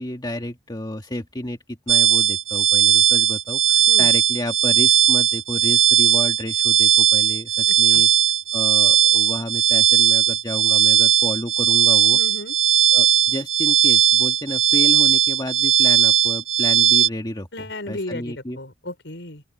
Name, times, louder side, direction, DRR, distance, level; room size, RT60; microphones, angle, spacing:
voice 1, 0.0-8.1 8.5-12.2 12.9-18.6, left 1 dB, 25° left, 1.9 m, -31 dB
sound 1, 1.9-17.1, right 10 dB, 80° right, 2.3 m, -17 dB
voice 2, 7.7-8.0 12.1-12.5 17.5-19.4, left 1 dB, 70° left, 5.2 m, -35 dB
open air
head